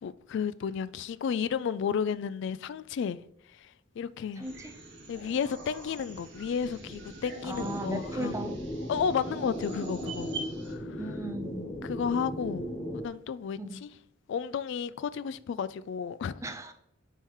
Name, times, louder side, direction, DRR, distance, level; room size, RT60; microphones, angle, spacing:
voice 1, 0.0-3.2 3.6-4.4 5.1-8.4 8.9-10.3 10.7-10.9 11.8-13.9 14.3-16.4, left 7 dB, 60° left, 0.3 m, -32 dB
voice 2, 4.4-4.8 7.4-8.6 10.9-11.7 13.6-13.8 16.4-16.7, right 1 dB, 15° right, 0.6 m, -37 dB
sound 1, 4.4-10.7, right 2 dB, 65° right, 1.7 m, -44 dB
sound 2, 7.5-13.1, equal, 25° left, 0.7 m, -37 dB
9.8 x 3.7 x 3.0 m
head